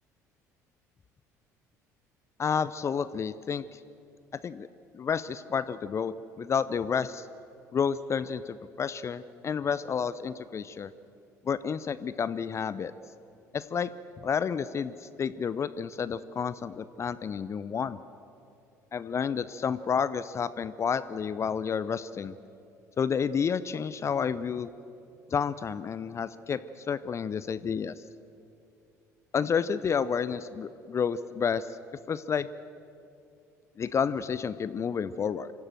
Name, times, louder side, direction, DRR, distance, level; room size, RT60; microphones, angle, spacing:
voice 1, 2.4-3.8 4.3-4.7 4.9-7.3 7.7-10.9 11.4-12.9 13.5-13.9 14.2-18.0 18.9-22.3 23.0-24.7 25.3-27.9 29.3-31.7 32.1-32.5 33.8-35.5, left 6 dB, 35° left, 15 dB, 0.6 m, -30 dB
26.0 x 14.5 x 7.7 m, 2.6 s
figure-of-eight pair, 55°, 9 cm